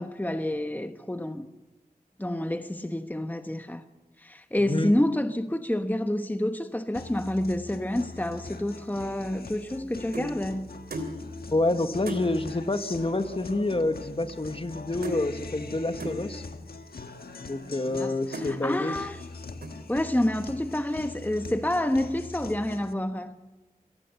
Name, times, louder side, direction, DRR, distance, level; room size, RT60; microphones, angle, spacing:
voice 1, 0.0-1.5 2.2-3.8 4.2-10.7 17.9-19.2 19.9-23.4, left 1 dB, 10° left, 1.2 m, -28 dB
Guitar, 6.9-22.9, left 4 dB, 85° left, 1.5 m, -42 dB
sound 1, 9.2-10.4 10.9-11.2 11.6-11.7 12.0-12.3 13.2-13.3 13.5-13.8 14.1-14.8 15.0-15.3 16.0-16.2 16.9-17.0 17.6-18.0 18.3-18.6 19.1-19.3 19.6-20.0, right 1 dB, 90° right, 3.2 m, -37 dB
voice 2, 11.5-16.4 17.4-18.9, left 2 dB, 35° left, 1.6 m, -28 dB
27.5 x 18.5 x 7.0 m
cardioid pair, 45°, 15 cm